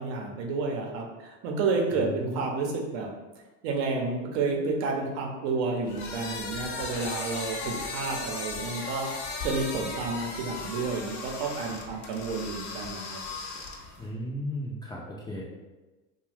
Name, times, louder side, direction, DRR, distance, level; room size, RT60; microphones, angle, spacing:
voice 1, 0.0-3.1 3.6-9.1 9.4-13.2, right 4 dB, 70° right, 1 dB, 0.7 m, -30 dB
voice 2, 1.9-2.4 14.0-15.5, equal, 10° left, -6 dB, 0.4 m, -35 dB
sound 1, 5.9-14.1, left 4 dB, 45° left, 0.7 m, -37 dB
2.5 x 2.2 x 3.3 m, 1.2 s
supercardioid pair, 100°, 37 cm